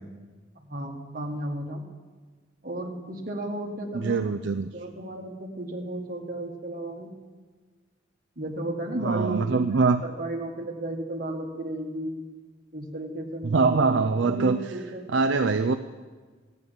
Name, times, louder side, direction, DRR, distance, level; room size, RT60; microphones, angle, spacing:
voice 1, 0.5-1.8 2.6-4.4 4.7-7.1 8.3-12.3 12.7-15.2, right 1 dB, 45° right, 2 dB, 1.7 m, -34 dB
voice 2, 3.9-4.7 9.0-10.0 13.4-14.6 15.1-15.7, right 4 dB, 60° right, 8 dB, 0.4 m, -23 dB
14.5 x 9.7 x 7.1 m, 1.4 s
head